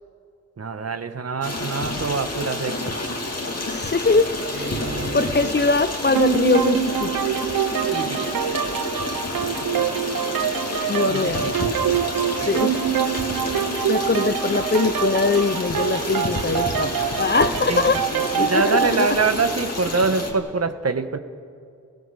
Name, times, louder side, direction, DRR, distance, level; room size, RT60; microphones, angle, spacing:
voice 1, 0.6-3.0 4.6-5.5 7.9-8.4 11.1-11.7 12.4-12.8 17.7-21.2, right 4 dB, 45° right, 9 dB, 1.4 m, -25 dB
Stream, 1.4-20.3, left 2 dB, 50° left, 3.2 m, -29 dB
voice 2, 3.7-4.8 5.1-7.1 10.9-11.5 12.5-12.8 13.9-16.9 17.2-18.0 18.4-19.2, left 4 dB, 30° left, 13 dB, 0.7 m, -22 dB
sound 1, 6.1-19.0, right 9 dB, 80° right, 0.7 m, -25 dB
29.5 x 15.5 x 7.0 m, 2.5 s
cardioid pair, 60°, 34 cm